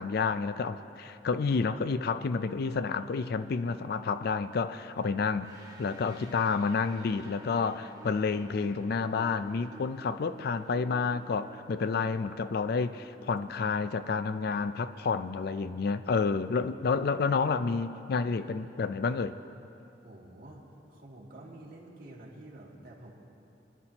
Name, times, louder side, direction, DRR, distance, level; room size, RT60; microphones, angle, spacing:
voice 1, 0.0-19.3, left 5 dB, 60° left, 12 dB, 0.4 m, -30 dB
sound 1, 5.4-16.3, right 1 dB, 20° right, 1.2 m, -53 dB
voice 2, 20.0-23.1, right 1 dB, 55° right, -4 dB, 2.3 m, -49 dB
24.5 x 11.0 x 2.9 m, 2.9 s
head